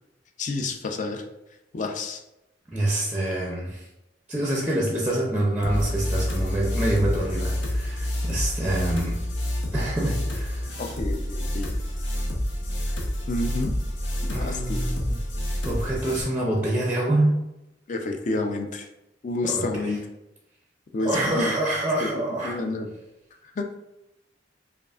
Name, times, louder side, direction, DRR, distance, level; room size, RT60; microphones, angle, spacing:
voice 1, 0.4-1.2 1.7-2.2 10.8-11.7 13.3-13.8 14.3-14.8 17.9-18.9 19.2-20.0 20.9-21.5 22.0-22.1 22.4-22.9 23.6-23.8, left 2 dB, 45° left, 4 dB, 0.4 m, -29 dB
voice 2, 2.7-3.9 4.3-9.2 9.7-10.8 14.3-15.2 15.6-17.3 19.5-20.0 21.0-22.6, right 1 dB, 10° right, -2 dB, 0.5 m, -26 dB
sound 1, 5.6-16.2, left 1 dB, 90° left, 0.9 m, -28 dB
5.0 x 2.4 x 2.4 m, 0.93 s
head